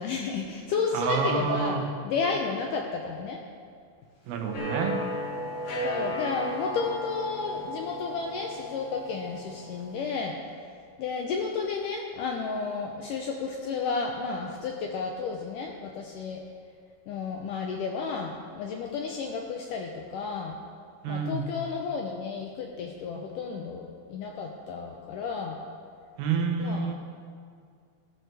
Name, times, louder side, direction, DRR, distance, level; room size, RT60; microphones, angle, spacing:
voice 1, 0.0-3.4 5.8-10.4 11.0-16.4 17.1-20.6 21.1-25.6 26.6-26.9, left 5 dB, 80° left, 1 dB, 1.9 m, -32 dB
voice 2, 0.9-1.8 4.3-5.0 21.0-21.5 26.2-26.9, right 5 dB, 75° right, 4 dB, 2.9 m, -28 dB
sound 1, 4.5-10.1, equal, 60° left, 3.3 m, -35 dB
16.0 x 12.0 x 3.4 m, 2.2 s
omnidirectional pair, 4.5 m